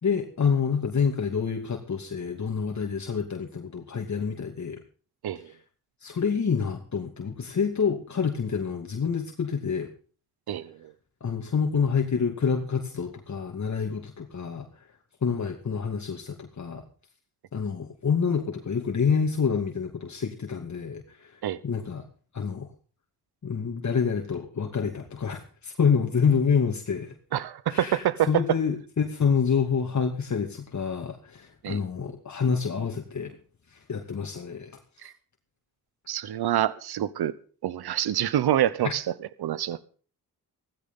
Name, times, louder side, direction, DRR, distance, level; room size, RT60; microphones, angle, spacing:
voice 1, 0.0-4.8 5.4-5.6 6.0-9.9 11.2-14.7 15.2-16.8 17.5-22.0 22.3-22.7 23.4-27.1 27.7-33.4 33.7-34.7 35.0-35.1 38.8-38.9, left 6 dB, 45° left, 2.5 m, -27 dB
voice 2, 27.3-28.6 31.6-31.8 35.0-35.1 36.1-37.3 37.6-39.0 39.4-39.9, right 11 dB, 80° right, 1.0 m, -26 dB
17.0 x 15.0 x 3.8 m
cardioid pair, 80°, 38 cm